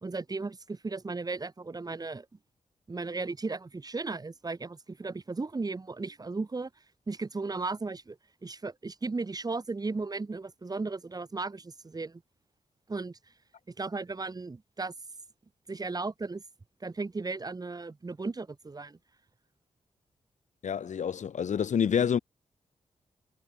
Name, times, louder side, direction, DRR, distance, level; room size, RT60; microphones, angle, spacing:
voice 1, 0.0-2.3 2.9-6.7 7.1-8.2 8.4-12.2 12.9-13.2 13.7-14.9 15.7-16.4 16.8-19.0, right 3 dB, 30° right, 3.6 m, -35 dB
voice 2, 20.6-22.2, left 7 dB, 65° left, 1.2 m, -27 dB
wide cardioid pair, 110°, 13 cm